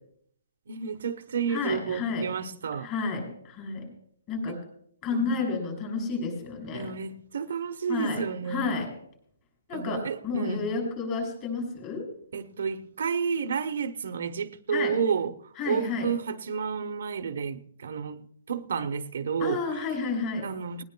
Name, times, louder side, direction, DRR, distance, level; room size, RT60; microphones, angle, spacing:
voice 1, 0.7-2.9 5.1-5.3 6.7-8.8 9.7-10.7 12.3-19.6 20.4-20.8, right 6 dB, 60° right, 0.9 m, -31 dB
voice 2, 1.5-2.3 2.8-3.9 4.3-4.5 5.0-6.9 7.9-8.9 9.7-12.0 14.7-15.0 15.6-16.1 19.4-20.5, left 4 dB, 20° left, 6.7 m, -31 dB
20.0 x 19.5 x 2.3 m
hypercardioid pair, 170°, 0 cm